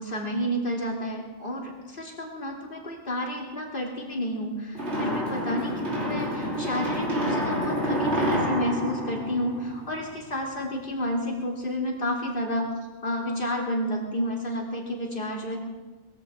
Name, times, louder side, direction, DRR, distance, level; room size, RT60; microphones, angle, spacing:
voice 1, 0.0-12.7 13.0-15.6, equal, 40° left, -1 dB, 3.1 m, -30 dB
sound 1, 4.7-10.1, equal, 50° right, 3.9 m, -28 dB
21.5 x 15.0 x 3.7 m, 1.2 s
omnidirectional pair, 1.4 m